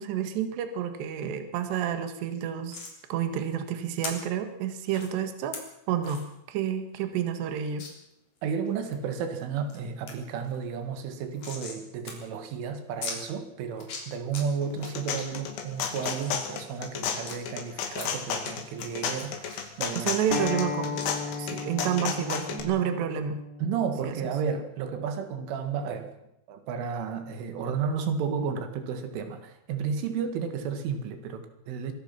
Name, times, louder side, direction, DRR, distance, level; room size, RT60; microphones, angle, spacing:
voice 1, 0.0-2.8 3.1-5.6 5.9-6.2 6.5-7.9 20.0-21.0 21.4-23.4 24.0-24.2, right 9 dB, 70° right, 7 dB, 3.6 m, -29 dB
sound 1, 2.7-3.0 4.0-4.1 4.9-5.1 5.5-5.6 6.0-6.3 6.6-6.7 7.0-7.1 7.8-7.9 8.4-9.0 9.4-9.8 10.1-10.2 10.4-11.8 12.1-12.2 12.4-12.5 13.0-13.2 13.7-14.4 14.8-15.2 15.7-17.3 17.9-18.5 18.8-20.7 21.0-21.1, left 4 dB, 40° left, 4.5 m, -40 dB
voice 2, 8.4-20.1 23.6-26.1 26.5-31.9, right 6 dB, 90° right, 7 dB, 4.5 m, -32 dB
sound 2, 14.6-22.6, left 7 dB, 75° left, 4.7 m, -32 dB
Acoustic guitar, 20.3-25.5, left 4 dB, 25° left, 2.5 m, -36 dB
25.0 x 19.5 x 5.9 m, 0.81 s
omnidirectional pair, 5.5 m